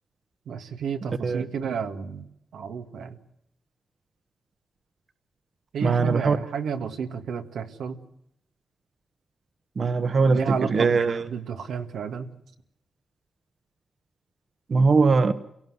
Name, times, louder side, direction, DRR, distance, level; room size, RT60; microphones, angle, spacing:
voice 1, 0.5-3.2 5.7-8.0 10.3-11.0 11.3-12.3, right 6 dB, 90° right, 6 dB, 2.0 m, -31 dB
voice 2, 5.8-6.4 9.8-11.2 14.7-15.3, right 4 dB, 50° right, 11 dB, 1.3 m, -21 dB
28.5 x 18.0 x 8.0 m, 0.77 s
cardioid pair, 90°, 0 cm